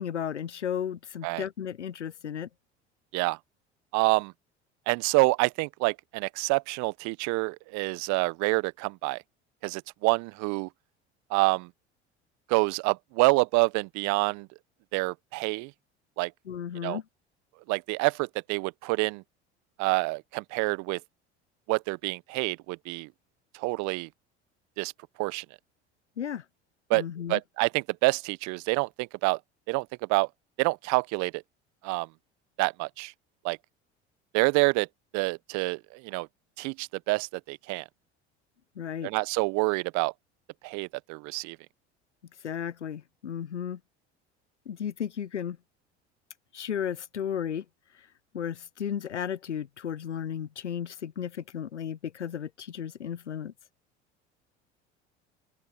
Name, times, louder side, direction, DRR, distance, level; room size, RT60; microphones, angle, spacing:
voice 1, 0.0-2.5 16.5-17.0 26.2-26.4 26.9-27.4 38.8-39.1 42.4-43.8 44.7-45.6 46.5-47.6 48.3-53.5, left 8 dB, 90° left, 0.7 m, -34 dB
voice 2, 3.9-4.3 4.9-9.2 9.6-10.7 11.3-11.7 12.5-14.5 14.9-15.7 16.2-16.3 16.8-17.0 17.7-19.2 19.8-21.0 21.7-23.1 23.5-24.1 24.8-24.9 25.2-25.4 26.9-27.0 27.3-29.4 29.7-30.3 30.6-31.4 31.8-32.1 32.6-33.1 33.4-33.6 34.3-34.9 35.1-36.3 36.6-37.8 39.0-40.1 40.6-41.6, right 27 dB, 55° right, 1.1 m, -27 dB
open air
figure-of-eight pair, 70°, 34 cm